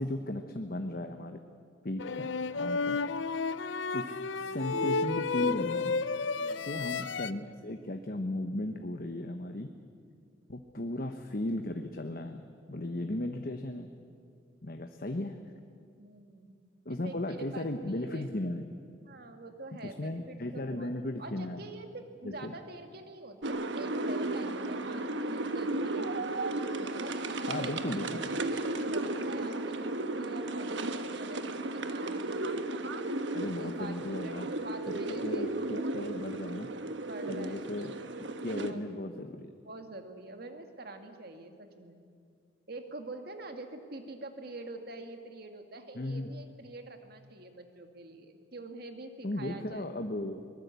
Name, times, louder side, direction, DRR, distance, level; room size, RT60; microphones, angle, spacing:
voice 1, 0.0-1.4 1.8-2.3 2.5-3.0 3.9-6.0 6.7-9.7 10.5-12.4 12.7-13.9 14.6-15.4 16.8-18.6 19.8-21.6 22.2-22.5 27.5-28.3 33.3-34.5 34.9-36.7 37.3-37.9 38.2-39.5 45.9-46.3 49.2-50.5, left 1 dB, 50° left, 6 dB, 1.1 m, -36 dB
sound 1, 2.0-7.3, left 4 dB, 75° left, 0.6 m, -32 dB
sound 2, 4.7-8.1, right 1 dB, 10° left, 4.9 m, -44 dB
voice 2, 6.4-7.0 10.8-11.1 13.0-13.1 16.0-16.6 16.9-17.7 18.0-18.3 19.1-20.9 21.2-26.4 27.0-32.7 33.6-35.7 37.1-37.7 38.4-38.8 39.6-42.0 42.7-49.8, right 2 dB, 55° right, 6 dB, 2.1 m, -46 dB
sound 3, 23.4-38.7, right 2 dB, 70° right, 1.3 m, -34 dB
23.5 x 20.0 x 8.3 m, 2.2 s
head